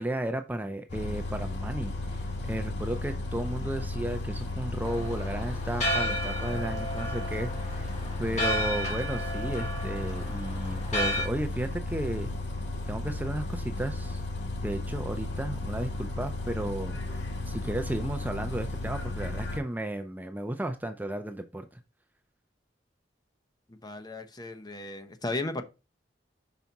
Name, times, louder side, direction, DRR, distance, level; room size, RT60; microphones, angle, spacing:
voice 1, 0.0-7.9 8.2-12.3 12.9-14.2 14.6-21.8, right 1 dB, 10° right, 0.5 m, -34 dB
Bus, 0.9-19.6, left 2 dB, 80° left, 2.2 m, -34 dB
Church bell, 4.8-11.3, equal, 40° left, 2.8 m, -33 dB
voice 2, 23.8-25.6, left 2 dB, 25° left, 0.8 m, -35 dB
5.9 x 4.8 x 4.0 m
head